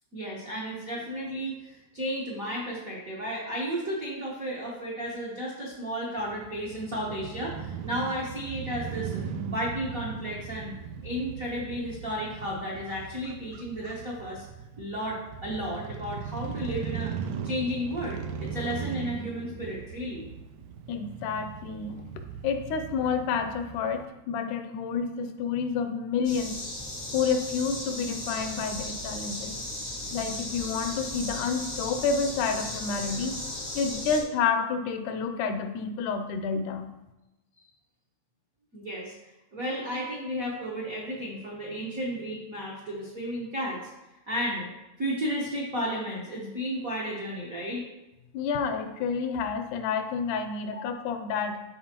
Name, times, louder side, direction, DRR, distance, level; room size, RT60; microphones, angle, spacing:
voice 1, 0.1-10.7 11.0-14.4 14.8-20.3 38.7-39.1 39.5-43.8 44.3-44.7 45.0-47.9 50.7-50.8, equal, 65° right, -5 dB, 0.8 m, -33 dB
Crow / Motorcycle, 6.2-24.1, right 7 dB, 85° right, 1.5 m, -39 dB
voice 2, 20.9-22.0 22.4-26.6 27.1-29.5 30.1-33.4 33.8-36.9 48.3-51.6, left 5 dB, 80° left, 7 dB, 2.1 m, -29 dB
sound 1, 26.2-34.2, left 1 dB, 60° left, 0.4 m, -36 dB
13.0 x 4.4 x 2.9 m, 0.96 s
omnidirectional pair, 3.6 m